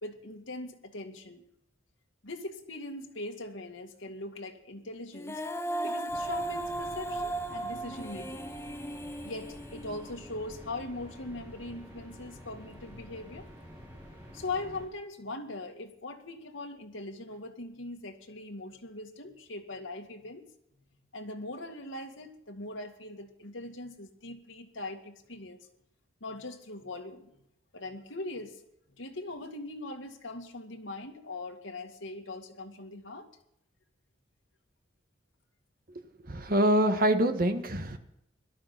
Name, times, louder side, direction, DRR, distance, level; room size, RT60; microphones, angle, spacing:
voice 1, 0.0-1.4 2.2-5.4 5.8-8.5 9.2-13.5 14.3-20.5 21.1-25.6 26.2-27.3 27.7-28.6 29.0-33.3, left 2 dB, 85° left, 3 dB, 2.2 m, -41 dB
Female singing, 5.1-10.3, right 1 dB, 15° left, 0.9 m, -36 dB
sound 1, 6.1-14.8, equal, 10° right, 6.2 m, -49 dB
voice 2, 35.9-38.0, right 1 dB, 50° right, 7 dB, 1.5 m, -26 dB
17.5 x 12.0 x 5.9 m, 0.77 s
head